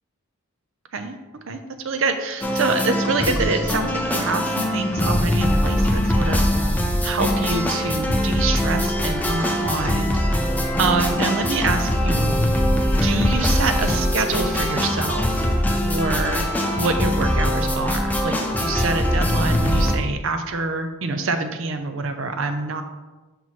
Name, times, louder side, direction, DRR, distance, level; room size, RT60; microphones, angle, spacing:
voice 1, 1.8-6.4 7.0-10.2 10.8-12.4 13.0-15.5 15.8-16.4 16.7-22.8, right 3 dB, 65° right, 7 dB, 0.5 m, -26 dB
sound 1, 2.4-20.0, equal, 10° left, 0.4 m, -22 dB
5.7 x 5.3 x 3.1 m, 1.2 s
head